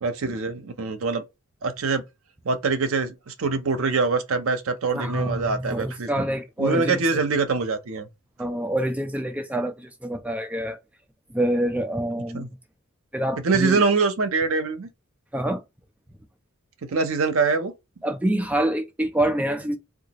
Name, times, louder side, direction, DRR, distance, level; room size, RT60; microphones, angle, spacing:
voice 1, 0.0-1.2 1.6-2.0 2.4-6.1 6.6-8.1 12.3-12.5 13.4-14.9 16.9-17.7, right 4 dB, 75° right, 0.6 m, -24 dB
voice 2, 4.9-7.2 8.4-10.8 11.3-12.5 13.1-13.8 15.3-15.6 18.0-19.8, right 1 dB, 5° right, 0.4 m, -26 dB
3.7 x 2.4 x 2.9 m
head